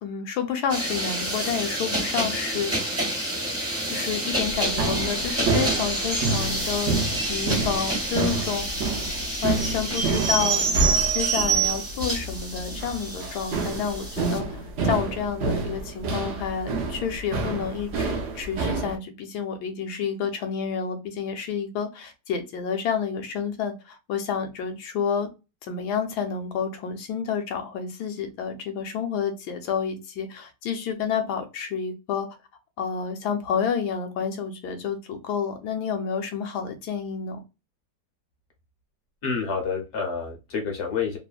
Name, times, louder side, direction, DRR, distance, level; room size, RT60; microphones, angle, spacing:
voice 1, 0.0-2.7 3.8-7.0 7.3-8.7 9.4-10.6 11.1-25.3 25.7-32.3 32.8-37.4, left 7 dB, 75° left, 1.2 m, -29 dB
sound 1, 0.7-14.4, right 2 dB, 15° right, 0.5 m, -28 dB
sound 2, 4.3-19.0, right 3 dB, 60° right, 0.8 m, -28 dB
voice 2, 39.2-41.2, left 5 dB, 55° left, 0.8 m, -28 dB
3.0 x 2.1 x 2.3 m
omnidirectional pair, 1.8 m